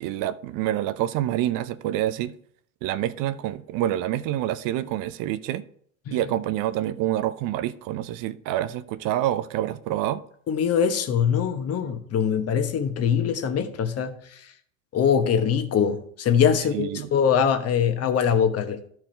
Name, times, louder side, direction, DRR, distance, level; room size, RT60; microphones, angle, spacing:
voice 1, 0.0-2.3 2.8-5.6 6.1-10.2 16.7-17.1, right 13 dB, 50° right, 0.7 m, -27 dB
voice 2, 10.5-14.2 14.9-18.9, left 7 dB, 35° left, 1.2 m, -23 dB
13.0 x 4.7 x 4.5 m
supercardioid pair, 105°, 42 cm